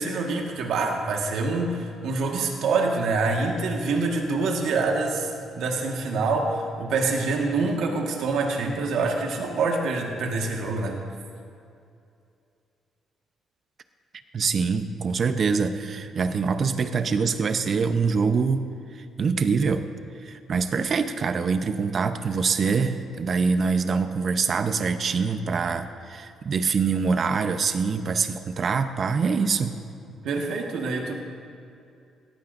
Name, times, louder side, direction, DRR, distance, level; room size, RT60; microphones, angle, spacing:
voice 1, 0.0-5.3 5.5-11.0 30.2-31.1, right 3 dB, 80° right, 1 dB, 1.6 m, -26 dB
voice 2, 14.3-18.7 18.9-19.9 20.2-29.7, right 5 dB, 50° right, 9 dB, 0.8 m, -24 dB
18.5 x 15.0 x 2.6 m, 2.5 s
cardioid pair, 90°, 0 cm